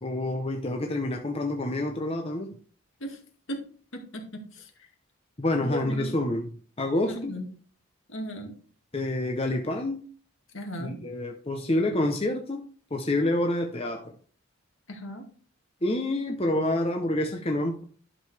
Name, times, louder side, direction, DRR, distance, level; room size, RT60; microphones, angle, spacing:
voice 1, 0.0-2.6 5.4-7.3 8.9-10.0 10.8-12.6 12.9-14.2 15.8-17.8, left 1 dB, 25° left, 3 dB, 0.7 m, -28 dB
voice 2, 3.9-4.7 5.6-6.1 7.1-7.5 8.1-8.5 10.5-11.0 14.9-15.3, equal, 65° left, 2 dB, 2.2 m, -36 dB
11.5 x 6.5 x 3.4 m, 0.43 s
head